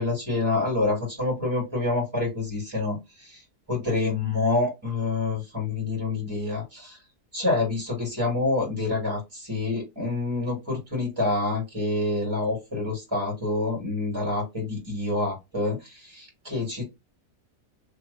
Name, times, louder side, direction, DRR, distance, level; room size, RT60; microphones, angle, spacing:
voice 1, 0.0-3.4 3.7-7.0 7.3-16.8, left 2 dB, 15° right, -2 dB, 1.7 m, -27 dB
3.5 x 2.8 x 2.5 m, 0.22 s
omnidirectional pair, 1.7 m